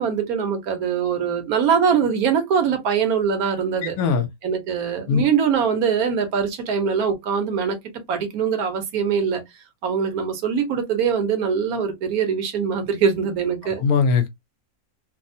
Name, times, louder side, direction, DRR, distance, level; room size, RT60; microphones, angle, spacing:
voice 1, 0.0-4.0 4.4-7.8 8.1-9.4 9.8-13.8, right 6 dB, 80° right, 1.2 m, -22 dB
voice 2, 3.8-4.3 5.1-5.2 13.8-14.3, left 5 dB, 80° left, 1.2 m, -20 dB
3.3 x 2.0 x 2.6 m
omnidirectional pair, 1.6 m